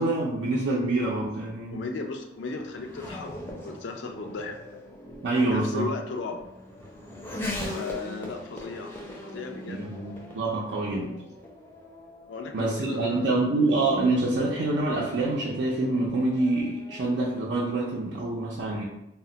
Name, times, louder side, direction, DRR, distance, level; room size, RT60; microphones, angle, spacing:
voice 1, 0.0-1.8 5.2-5.9 9.7-11.1 12.5-18.8, right 2 dB, 75° right, -4 dB, 0.4 m, -26 dB
Race car auto racing / Accelerating revving vroom, 1.5-17.2, left 1 dB, 15° left, 0.5 m, -41 dB
voice 2, 1.7-4.6 5.0-6.4 7.7-8.9 9.2-10.4 12.3-13.4, left 4 dB, 80° left, 3 dB, 0.4 m, -36 dB
2.1 x 2.1 x 3.7 m, 0.83 s
head